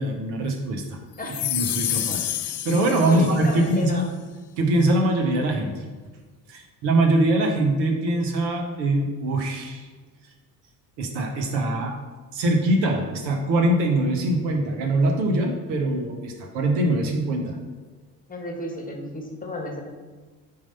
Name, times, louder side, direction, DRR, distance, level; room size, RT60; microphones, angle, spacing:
voice 1, 0.0-1.0 1.4-2.3 2.6-4.1 4.6-5.8 6.5-9.9 11.0-12.0 12.3-17.6, right 1 dB, 60° right, 3 dB, 1.1 m, -23 dB
sound 1, 1.2-3.7, left 13 dB, 35° left, 0.4 m, -29 dB
voice 2, 3.1-4.1 18.3-19.8, left 1 dB, 20° left, 2 dB, 1.2 m, -32 dB
4.7 x 3.8 x 5.5 m, 1.4 s
hypercardioid pair, 60°, 47 cm